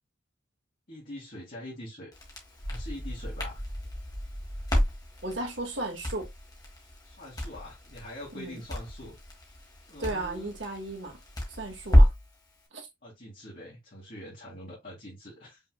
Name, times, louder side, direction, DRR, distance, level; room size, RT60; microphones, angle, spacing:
voice 1, 0.9-2.1 2.6-3.6 7.0-9.2 9.9-10.5 13.0-15.6, left 1 dB, 45° left, 2.1 m, -44 dB
Crackle, 2.1-12.3, equal, 20° left, 1.5 m, -29 dB
voice 2, 5.2-6.3 8.3-8.6 10.0-11.2 11.5-12.1 12.7-12.8, right 2 dB, 80° right, 1.9 m, -35 dB
5.4 x 3.5 x 2.2 m
head